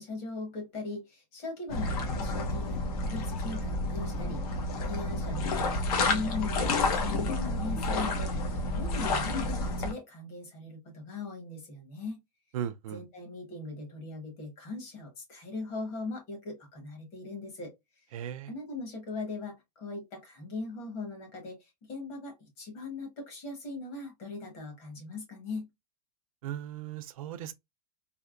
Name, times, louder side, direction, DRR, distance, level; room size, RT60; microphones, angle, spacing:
voice 1, 0.0-12.2 12.9-17.7 18.5-25.7, left 3 dB, 30° left, 1.1 m, -40 dB
sound 1, 1.7-9.9, left 2 dB, 60° left, 0.9 m, -30 dB
voice 2, 12.5-13.0 18.1-18.5 26.4-27.5, right 10 dB, 55° right, 0.4 m, -37 dB
3.4 x 2.7 x 2.4 m
supercardioid pair, 180°, 21 cm